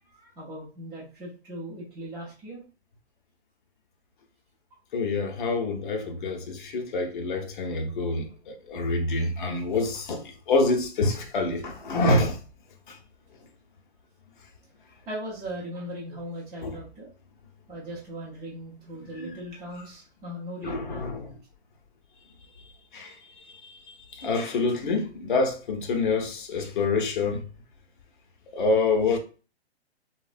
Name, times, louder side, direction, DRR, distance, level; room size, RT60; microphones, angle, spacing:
voice 1, 0.1-2.6 11.6-12.0 15.1-17.1 17.7-21.1, right 1 dB, 10° right, 0.6 m, -39 dB
voice 2, 4.9-12.4 12.9-13.0 16.6-16.8 20.6-21.3 22.9-27.4 28.5-29.2, left 3 dB, 50° left, 0.7 m, -27 dB
3.1 x 2.1 x 2.4 m
hypercardioid pair, 155°, 33 cm